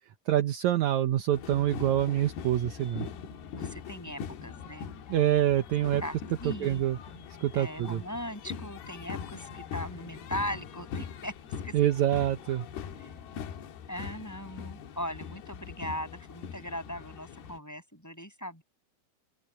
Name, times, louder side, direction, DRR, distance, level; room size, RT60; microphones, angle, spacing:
voice 1, 0.3-3.1 5.1-6.0 6.4-7.0 7.4-8.0 11.7-12.7, right 12 dB, 75° right, 1.8 m, -26 dB
sound 1, 1.3-17.6, left 7 dB, 85° left, 3.7 m, -42 dB
voice 2, 3.6-5.4 6.0-6.1 6.4-6.8 7.5-11.3 11.6-11.8 13.0-13.3 13.9-18.6, equal, 5° left, 7.4 m, -39 dB
open air
omnidirectional pair, 4.5 m